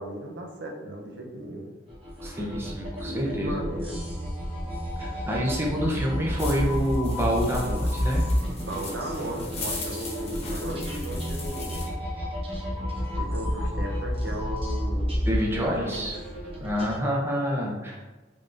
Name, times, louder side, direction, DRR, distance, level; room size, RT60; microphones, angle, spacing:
voice 1, 0.0-1.7 3.0-4.0 8.6-11.9 13.2-15.2 15.5-16.1, right 1 dB, 75° right, 1 dB, 0.6 m, -36 dB
sound 1, 1.9-17.0, equal, 30° right, 1.0 m, -30 dB
voice 2, 2.2-3.5 5.0-8.2 15.2-16.2 16.6-18.1, equal, 15° right, -2 dB, 0.5 m, -27 dB
sound 2, 6.4-11.9, left 2 dB, 35° left, 0.9 m, -39 dB
3.6 x 3.2 x 2.5 m, 1.2 s
head